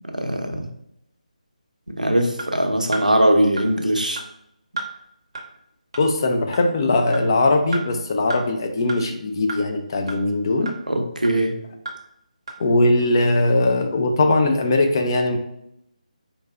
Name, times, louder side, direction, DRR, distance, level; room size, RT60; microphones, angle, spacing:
voice 1, 0.1-0.7 2.0-4.2 10.6-11.5, right 1 dB, 90° right, 3 dB, 0.7 m, -21 dB
sound 1, 2.4-2.5 2.9-3.1 3.6-3.7 4.2-4.3 4.8-4.9 5.4-5.5 5.9-6.0 6.5-6.6 7.1-7.2 7.7-7.8 8.3-8.4 8.9-9.0 9.5-9.6 10.1-10.2 10.7-10.8 11.2-11.3 11.9-12.0 12.5-12.6, right 3 dB, 40° right, 0.7 m, -31 dB
voice 2, 6.0-10.7 12.6-15.4, left 2 dB, 30° left, 4 dB, 0.4 m, -20 dB
4.5 x 2.8 x 2.3 m, 0.78 s
figure-of-eight pair, 155°, 4 cm